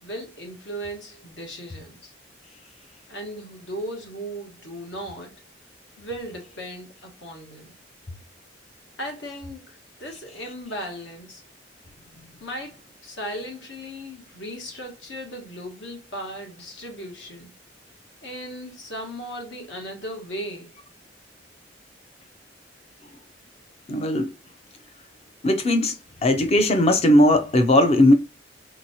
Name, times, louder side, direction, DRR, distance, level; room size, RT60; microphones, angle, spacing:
voice 1, 0.0-2.1 3.1-5.3 6.0-7.8 9.0-11.4 12.4-17.5 18.2-20.7, equal, 70° left, 1.3 m, -36 dB
voice 2, 23.9-24.3 25.4-26.0 26.2-28.1, left 1 dB, 35° left, 0.5 m, -18 dB
4.0 x 3.0 x 2.7 m
head